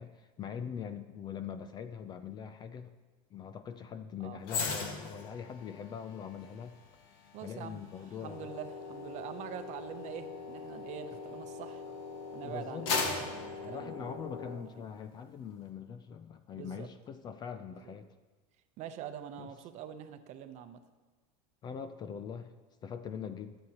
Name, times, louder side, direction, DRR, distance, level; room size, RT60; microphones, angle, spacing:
voice 1, 0.0-2.9 3.3-6.7 7.2-8.5 11.9-12.0 12.4-12.9 13.6-18.1 19.4-19.5 21.6-22.5 22.8-23.6, left 7 dB, 20° left, 10 dB, 0.4 m, -42 dB
sound 1, 4.4-11.9 12.3-14.7 15.1-15.3, left 4 dB, 60° left, 1.9 m, -39 dB
voice 2, 7.3-7.9 8.2-11.8 12.3-14.1 16.5-16.9 17.9-18.0 18.8-20.8, right 9 dB, 40° right, 9 dB, 0.8 m, -44 dB
sound 2, 8.2-14.6, left 4 dB, 75° left, 3.2 m, -44 dB
22.0 x 7.9 x 2.9 m, 1.4 s
supercardioid pair, 150°, 19 cm